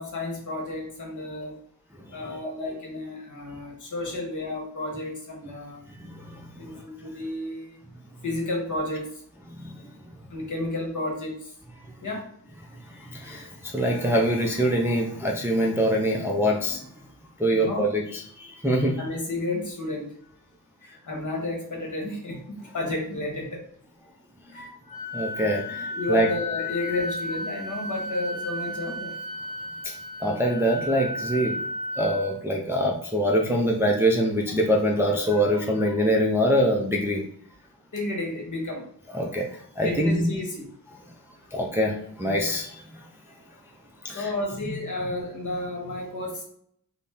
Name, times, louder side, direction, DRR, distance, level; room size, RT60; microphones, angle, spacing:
voice 1, 0.0-1.5 2.1-5.8 6.6-7.8 8.2-9.1 10.3-11.5 12.0-12.2 17.5-17.8 19.0-20.1 20.8-23.6 24.5-24.7 25.9-29.2 37.9-38.8 39.8-40.7 44.1-46.4, left 2 dB, 50° left, 0 dB, 1.1 m, -32 dB
voice 2, 2.2-2.7 6.0-6.8 9.5-9.7 12.8-16.8 17.4-18.9 25.1-26.3 30.2-31.5 32.0-37.2 39.1-39.5 39.8-40.3 41.5-41.9 42.2-42.8 44.0-44.3 44.6-44.7, equal, 5° right, -1 dB, 0.4 m, -24 dB
Wind instrument woodwind instrument, 24.5-32.3, left 2 dB, 15° left, 0.9 m, -34 dB
4.0 x 2.1 x 3.5 m, 0.67 s
wide cardioid pair, 135°, 38 cm